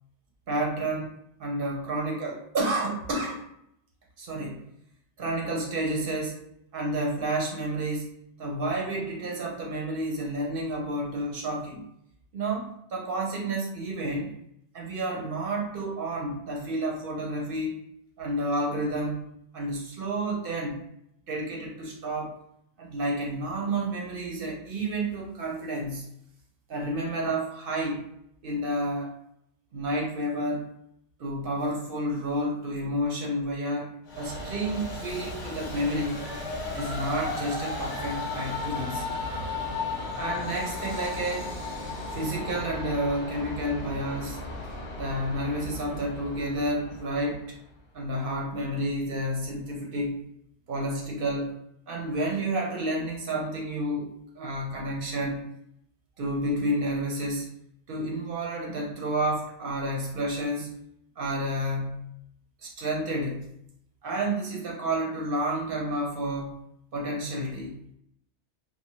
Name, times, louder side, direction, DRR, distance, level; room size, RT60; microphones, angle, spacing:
voice 1, 0.5-1.1 1.4-3.4 4.2-4.6 5.2-6.4 6.7-11.8 12.3-14.4 14.7-17.8 18.2-19.3 19.5-20.8 21.3-22.4 22.8-26.1 26.7-28.0 28.4-29.1 29.7-30.7 31.2-36.2 36.7-39.2 40.2-41.6 42.1-44.4 45.0-47.4 47.9-50.2 50.7-51.6 51.9-55.5 56.2-57.5 57.9-60.7 61.2-62.1 62.6-63.5 64.0-66.6 66.9-67.8, right 1 dB, 55° right, -1 dB, 0.8 m, -30 dB
Train, 34.1-47.5, left 2 dB, 50° left, 0.8 m, -35 dB
2.7 x 2.2 x 2.9 m, 0.75 s
omnidirectional pair, 1.2 m